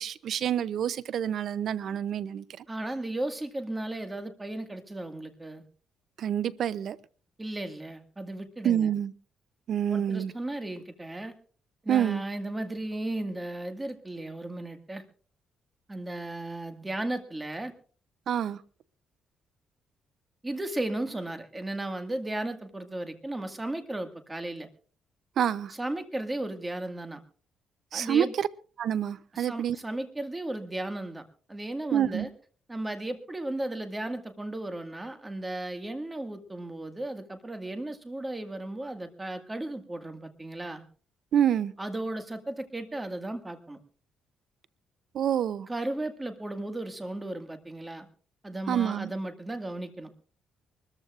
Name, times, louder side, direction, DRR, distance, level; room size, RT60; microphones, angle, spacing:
voice 1, 0.0-2.6 6.2-7.0 8.6-9.1 9.7-10.3 11.9-12.2 18.3-18.6 25.4-25.7 27.9-28.5 28.8-29.8 31.9-32.3 41.3-41.7 45.1-45.7 48.7-49.1, right 9 dB, 65° right, 0.6 m, -27 dB
voice 2, 2.7-5.6 7.4-8.9 9.9-11.3 11.8-15.0 15.9-17.7 20.4-24.7 25.7-27.2 27.9-28.3 29.3-32.3 32.7-40.8 41.8-43.8 45.7-48.1 48.4-50.1, right 1 dB, 15° right, 1.8 m, -35 dB
24.5 x 14.0 x 2.5 m
cardioid pair, 90°, 0 cm